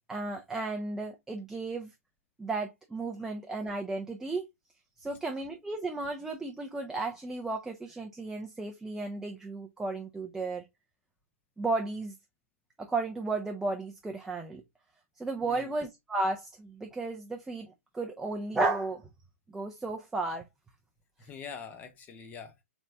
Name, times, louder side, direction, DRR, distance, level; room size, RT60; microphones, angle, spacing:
voice 1, 0.1-1.9 2.4-4.5 5.0-10.7 11.6-12.1 12.8-14.6 15.2-19.0 19.5-20.4, right 3 dB, 5° right, 0.4 m, -34 dB
voice 2, 15.4-15.7 21.2-22.6, left 6 dB, 20° left, 0.8 m, -44 dB
3.5 x 2.5 x 4.1 m
hypercardioid pair, 140°, 8 cm